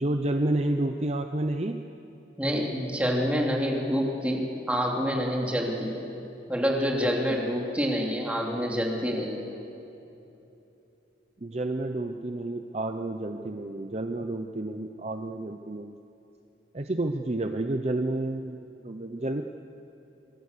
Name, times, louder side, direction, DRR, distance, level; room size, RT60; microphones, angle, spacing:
voice 1, 0.0-1.8 5.4-5.5 7.3-7.4 11.4-15.9 16.7-19.4, right 2 dB, 35° right, 6 dB, 0.7 m, -30 dB
voice 2, 2.4-5.9 6.5-9.4, equal, 5° right, -1 dB, 3.0 m, -27 dB
25.5 x 23.0 x 6.8 m, 2.9 s
head